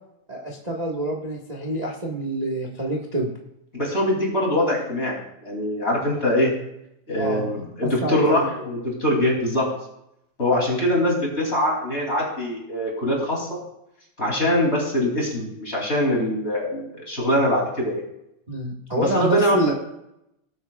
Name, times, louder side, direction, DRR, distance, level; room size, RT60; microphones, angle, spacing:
voice 1, 0.3-3.3 7.2-7.5 7.8-8.4 18.5-19.7, right 1 dB, 70° right, -1 dB, 0.4 m, -27 dB
voice 2, 3.7-6.5 7.1-9.7 10.4-13.6 14.2-18.0 19.0-19.7, left 1 dB, 20° left, -2 dB, 2.8 m, -23 dB
20.5 x 8.0 x 2.4 m, 0.81 s
omnidirectional pair, 3.5 m